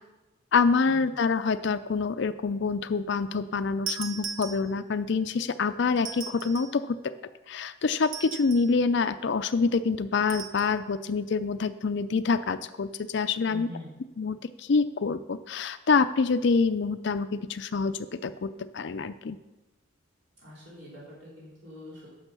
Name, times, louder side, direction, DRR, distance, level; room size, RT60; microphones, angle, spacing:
voice 1, 0.5-7.1 7.5-13.7 14.2-19.4, left 4 dB, 55° left, 12 dB, 0.4 m, -26 dB
sound 1, 3.9-5.0 6.0-6.8 8.0-8.8 10.3-10.7, right 7 dB, 75° right, 0.9 m, -38 dB
voice 2, 13.5-13.9 20.4-22.1, left 1 dB, 60° right, -7 dB, 3.8 m, -44 dB
10.5 x 6.5 x 6.8 m, 1.1 s
head